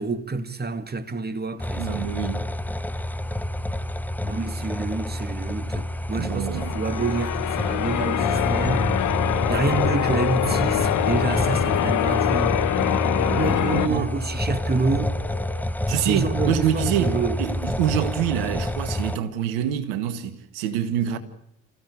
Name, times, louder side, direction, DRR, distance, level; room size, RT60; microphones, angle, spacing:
voice 1, 0.0-2.1 4.2-8.9 9.5-12.5 13.4-15.1 15.9-17.4, right 4 dB, 25° right, 2.1 m, -28 dB
sound 1, 1.6-19.2, left 1 dB, 5° left, 1.1 m, -28 dB
voice 2, 1.8-2.5 6.1-6.8 13.2-14.1 15.9-21.2, right 10 dB, 75° right, 1.9 m, -26 dB
Church bell, 6.6-13.9, left 12 dB, 50° left, 1.1 m, -24 dB
sound 2, 10.4-15.6, left 4 dB, 30° left, 4.3 m, -42 dB
27.0 x 15.5 x 8.5 m
hypercardioid pair, 50°, 37 cm